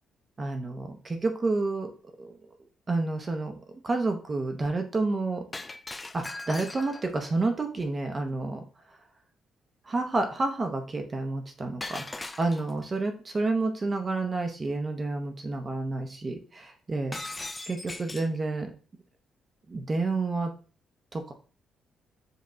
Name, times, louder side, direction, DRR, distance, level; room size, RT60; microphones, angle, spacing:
voice 1, 0.4-1.9 2.2-2.3 2.9-3.6 3.8-5.4 6.1-8.6 9.9-17.2 17.7-18.7 19.7-20.5 21.1-21.3, right 3 dB, 30° right, 5 dB, 0.6 m, -29 dB
Shatter, 5.5-7.2 11.8-12.9 17.1-18.4, left 2 dB, 20° left, 0.3 m, -39 dB
5.2 x 2.2 x 3.8 m, 0.38 s
cardioid pair, 90°, 0 cm